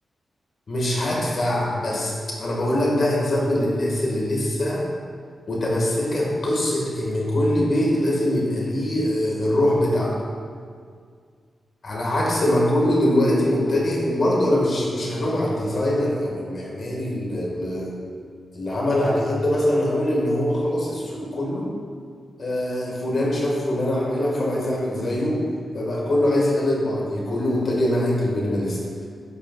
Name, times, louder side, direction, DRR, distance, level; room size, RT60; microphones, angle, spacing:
voice 1, 0.7-4.9 5.5-10.2 11.8-17.9 18.5-21.7 22.4-25.4 25.7-28.8, left 1 dB, 60° left, -3 dB, 1.7 m, -23 dB
9.9 x 5.4 x 2.4 m, 2.1 s
cardioid pair, 65°, 0 cm